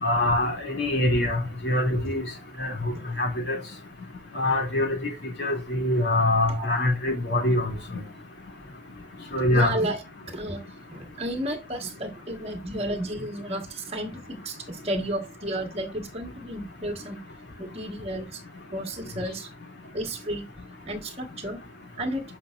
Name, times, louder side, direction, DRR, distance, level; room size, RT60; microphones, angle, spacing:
voice 1, 0.0-2.2 2.6-2.9 3.2-3.6 4.3-5.1 5.4-7.7 9.3-9.7, left 1 dB, 65° left, 2.8 m, -24 dB
voice 2, 6.4-6.8 9.5-10.0 10.3-10.6 10.9-17.2 17.6-18.4 18.7-19.5 19.9-20.5 20.9-21.6 22.0-22.2, right 1 dB, 35° right, 1.6 m, -32 dB
11.0 x 5.5 x 2.5 m
head